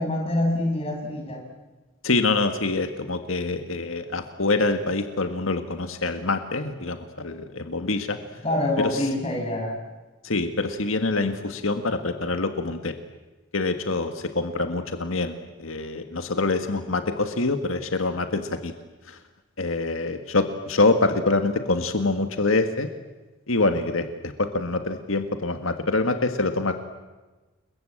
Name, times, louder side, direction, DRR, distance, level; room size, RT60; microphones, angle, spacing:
voice 1, 0.0-1.5 8.4-9.8, left 1 dB, 30° left, 0 dB, 6.5 m, -25 dB
voice 2, 2.0-8.2 8.8-9.0 10.2-12.9 13.5-18.7 19.1-19.2 19.6-22.9 23.5-26.8, left 3 dB, 90° left, 7 dB, 1.8 m, -25 dB
29.5 x 21.5 x 8.8 m, 1.2 s
head